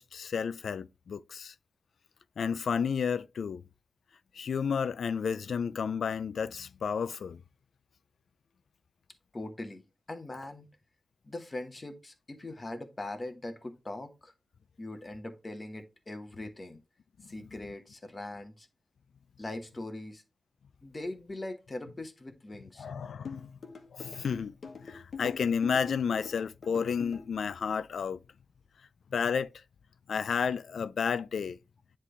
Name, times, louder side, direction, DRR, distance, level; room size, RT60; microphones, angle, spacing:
voice 1, 0.0-1.5 2.4-3.6 4.3-7.4 22.8-23.5 23.9-24.5 24.8-28.2 29.1-29.5 30.1-31.6, left 6 dB, 80° left, 0.3 m, -31 dB
voice 2, 9.3-9.8 10.1-10.7 11.2-14.3 14.8-16.8 17.2-18.7 19.4-20.2 20.8-22.9, left 2 dB, 25° left, 1.0 m, -41 dB
sound 1, 23.2-27.2, left 5 dB, 65° left, 1.1 m, -43 dB
9.8 x 3.3 x 3.2 m
wide cardioid pair, 130°, 0 cm